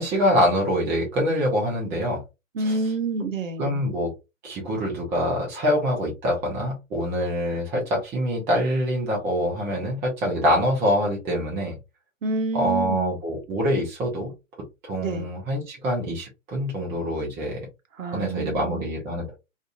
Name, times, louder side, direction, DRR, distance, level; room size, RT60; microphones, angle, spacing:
voice 1, 0.0-2.2 2.6-2.8 3.6-4.1 4.4-11.8 12.5-14.3 14.8-17.7 18.1-19.4, equal, 5° right, 0.3 m, -25 dB
voice 2, 2.5-3.9 12.2-13.1 15.0-15.3 18.0-18.9, right 3 dB, 75° right, 0.7 m, -28 dB
2.5 x 2.5 x 2.5 m
figure-of-eight pair, 115°, 39 cm